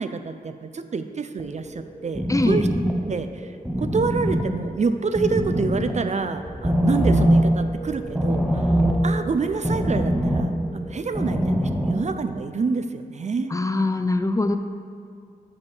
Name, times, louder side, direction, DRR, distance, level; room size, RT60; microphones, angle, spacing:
voice 1, 0.0-2.7 3.0-8.6 9.0-13.5, right 4 dB, 45° right, 9 dB, 0.4 m, -27 dB
sound 1, 1.4-12.2, equal, 5° right, 0.8 m, -23 dB
voice 2, 2.3-2.6 13.5-14.6, left 2 dB, 20° left, 8 dB, 0.4 m, -22 dB
6.2 x 5.3 x 5.5 m, 2.2 s
wide cardioid pair, 70°, 16 cm